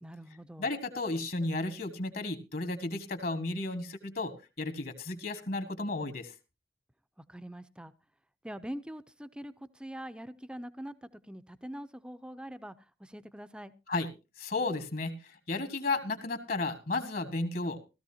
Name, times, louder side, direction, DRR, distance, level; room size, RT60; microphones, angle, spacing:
voice 1, 0.0-0.7 7.3-7.9 8.4-13.7, equal, 5° right, 0.5 m, -43 dB
voice 2, 0.6-6.3 13.9-14.1 14.4-17.8, left 2 dB, 55° left, 1.7 m, -33 dB
16.5 x 13.5 x 2.8 m
head